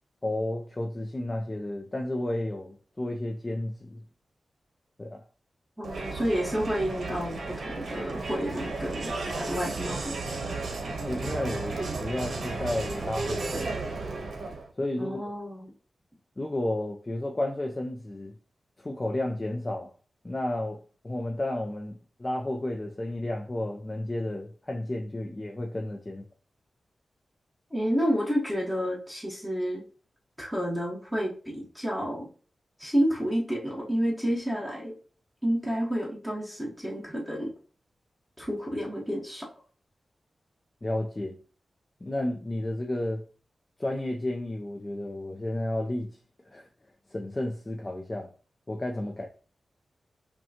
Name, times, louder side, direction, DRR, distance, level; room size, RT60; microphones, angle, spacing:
voice 1, 0.2-4.0 5.0-5.2 11.0-13.7 14.8-15.2 16.4-18.3 18.8-19.9 20.2-20.8 21.0-26.2 40.8-41.4 42.0-43.2 43.8-46.2 46.5-46.7 47.1-48.3 48.7-49.3, left 1 dB, 30° left, 0.5 m, -32 dB
voice 2, 5.8-10.4 15.0-15.7 27.7-29.8 30.4-32.3 32.8-34.9 35.4-37.5 38.4-39.5, equal, 5° right, 1.1 m, -30 dB
Crowd, 5.8-14.7, right 3 dB, 80° right, 0.8 m, -34 dB
5.4 x 2.2 x 2.8 m
wide cardioid pair, 90°, 0 cm